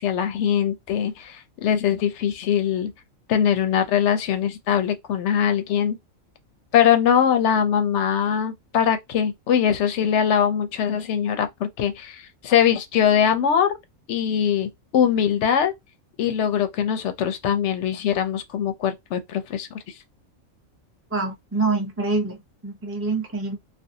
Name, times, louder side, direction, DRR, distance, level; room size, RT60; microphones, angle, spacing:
voice 1, 0.0-2.9 3.3-6.0 6.7-13.8 14.1-15.7 16.2-19.7, left 8 dB, 65° left, 0.8 m, -22 dB
voice 2, 21.1-23.6, right 3 dB, 15° right, 0.5 m, -26 dB
2.5 x 2.3 x 2.7 m
omnidirectional pair, 1.4 m